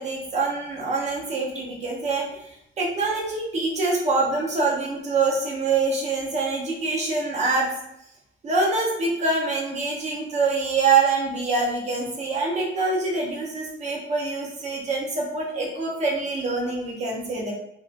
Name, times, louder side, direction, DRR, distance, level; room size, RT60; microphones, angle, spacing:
voice 1, 0.0-2.4 2.8-7.7 8.4-17.5, right 3 dB, 35° right, -2 dB, 0.7 m, -25 dB
2.5 x 2.3 x 2.4 m, 0.79 s
cardioid pair, 170°, 20 cm